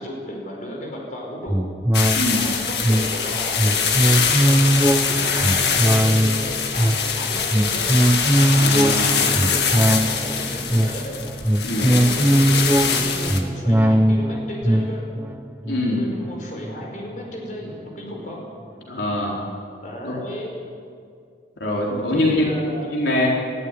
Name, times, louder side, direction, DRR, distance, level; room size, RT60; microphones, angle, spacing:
voice 1, 0.0-1.7 2.3-8.0 8.5-11.2 11.8-15.1 15.9-18.4 19.8-20.6 22.1-22.9, equal, 45° left, -1 dB, 5.2 m, -34 dB
sound 1, 1.5-17.2 17.6-17.7, right 1 dB, 10° right, 0.6 m, -21 dB
sound 2, 1.9-13.4, left 6 dB, 65° left, 2.0 m, -23 dB
voice 2, 8.6-9.2 11.6-11.9 15.7-16.0 18.9-19.4 20.0-20.1 21.6-22.5 22.9-23.3, left 1 dB, 85° left, -3 dB, 4.2 m, -23 dB
19.5 x 14.5 x 9.9 m, 2.3 s
head